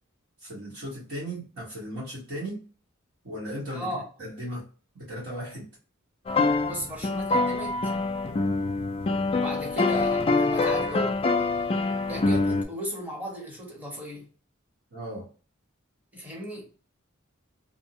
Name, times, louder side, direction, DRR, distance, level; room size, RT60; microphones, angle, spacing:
voice 1, 0.4-2.6 3.2-3.9 4.2-4.7 5.1-5.7 14.9-15.3, equal, 75° right, 1.1 m, -36 dB
voice 2, 3.7-4.0 6.6-7.9 9.4-11.2 12.1-14.3 16.1-16.7, equal, 10° right, 0.9 m, -36 dB
sound 1, 6.3-12.6, left 3 dB, 30° left, 0.3 m, -25 dB
2.6 x 2.1 x 2.7 m
head